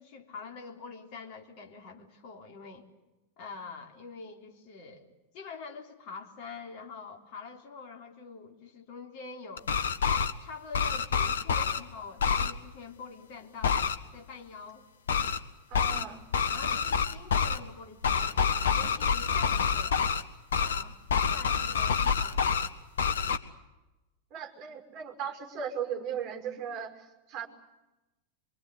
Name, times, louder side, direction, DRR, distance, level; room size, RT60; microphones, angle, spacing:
voice 1, 0.0-2.9 3.4-5.1 5.3-9.7 10.4-14.9 16.5-20.0 20.5-21.0 21.3-22.4, left 5 dB, 45° left, 3 dB, 3.7 m, -45 dB
sound 1, 9.6-10.3 10.7-11.8 12.2-12.5 13.6-14.0 15.1-15.4 15.7-16.0 16.3-17.6 18.0-20.2 20.5-20.8 21.1-22.7 23.0-23.4, left 6 dB, 65° left, 1.4 m, -27 dB
voice 2, 15.7-16.2 24.3-27.5, right 8 dB, 35° right, 3 dB, 5.6 m, -37 dB
24.5 x 24.5 x 8.3 m, 1.0 s
figure-of-eight pair, 90°, 0 cm